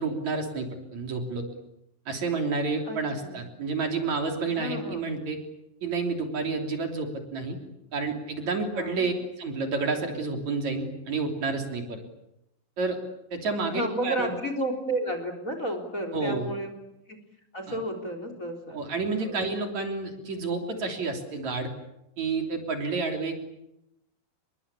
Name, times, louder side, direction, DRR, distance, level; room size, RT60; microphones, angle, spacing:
voice 1, 0.0-1.5 2.1-5.4 5.8-7.6 7.9-12.0 12.8-13.0 13.3-14.4 16.1-16.5 17.7-17.8 18.7-21.7 22.2-23.4, right 4 dB, 55° right, 4 dB, 4.4 m, -30 dB
voice 2, 2.8-3.4 4.5-5.2 8.7-9.1 13.6-16.7 17.1-17.2 17.5-18.8 19.2-19.4, right 1 dB, 25° left, 7 dB, 3.8 m, -32 dB
28.5 x 23.0 x 8.5 m, 0.85 s
omnidirectional pair, 4.0 m